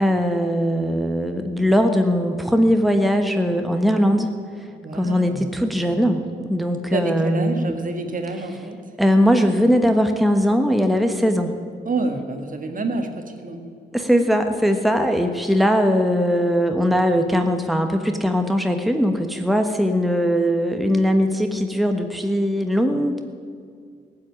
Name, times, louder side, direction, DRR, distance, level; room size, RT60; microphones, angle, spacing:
voice 1, 0.0-4.3 4.9-7.8 9.0-11.5 13.9-23.2, equal, ahead, 5 dB, 1.3 m, -20 dB
voice 2, 4.8-5.5 6.9-8.8 11.9-13.7, right 3 dB, 45° right, 6 dB, 1.8 m, -27 dB
15.5 x 7.9 x 9.7 m, 2.2 s
supercardioid pair, 60°, 19 cm